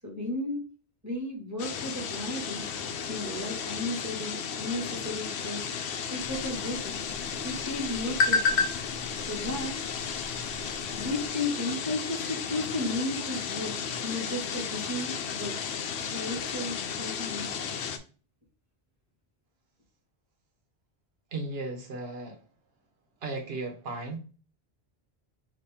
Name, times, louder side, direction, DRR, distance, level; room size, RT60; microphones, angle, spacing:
voice 1, 0.0-0.6 1.0-2.6 3.1-5.6 6.1-7.0 7.4-8.7 9.2-9.8 11.0-13.8 14.0-15.5 16.1-17.5, left 2 dB, 15° right, -3 dB, 1.5 m, -34 dB
sound 1, 1.6-18.0, left 7 dB, 85° left, 0.9 m, -34 dB
sound 2, 6.2-11.3, left 4 dB, 55° left, 0.6 m, -32 dB
voice 2, 21.3-22.4 23.2-24.2, right 2 dB, 70° right, 2 dB, 1.2 m, -35 dB
4.2 x 2.9 x 3.5 m, 0.37 s
omnidirectional pair, 1.1 m